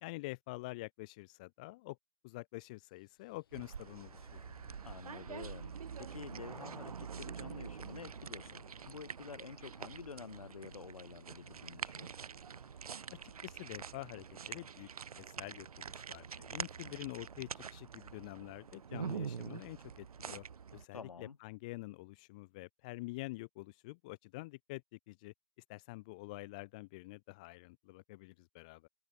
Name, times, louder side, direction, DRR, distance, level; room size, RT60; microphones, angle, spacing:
voice 1, 0.0-2.0 2.2-4.4 13.4-14.9 15.2-20.4 20.7-25.3 25.7-28.9, left 22 dB, 15° left, 0.6 m, -47 dB
sound 1, 2.9-14.7, left 9 dB, 40° left, 6.6 m, -66 dB
sound 2, 3.5-20.8, right 7 dB, 85° right, 0.8 m, -46 dB
voice 2, 4.8-12.1 20.9-21.4, left 5 dB, 75° left, 4.8 m, -49 dB
hypercardioid pair, 170°, 18 cm